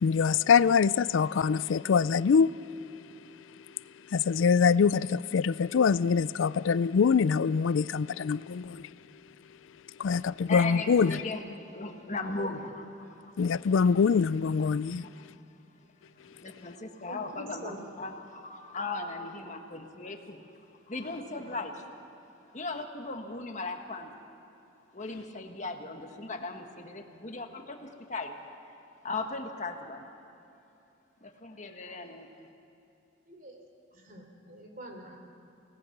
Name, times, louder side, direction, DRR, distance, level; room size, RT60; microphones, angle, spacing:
voice 1, 0.0-2.5 4.1-8.8 10.0-11.2 13.4-15.0, left 6 dB, 75° left, 0.4 m, -24 dB
voice 2, 10.5-12.9 13.2-13.3 15.0-15.1 16.4-20.4 20.9-21.7 22.5-24.1 24.9-28.3 29.0-30.1 31.2-32.5, left 3 dB, 40° left, 1.6 m, -37 dB
voice 3, 17.1-17.9 21.3-21.6 33.3-33.6 33.9-35.2, right 1 dB, 45° right, 3.5 m, -46 dB
30.0 x 18.5 x 6.0 m
head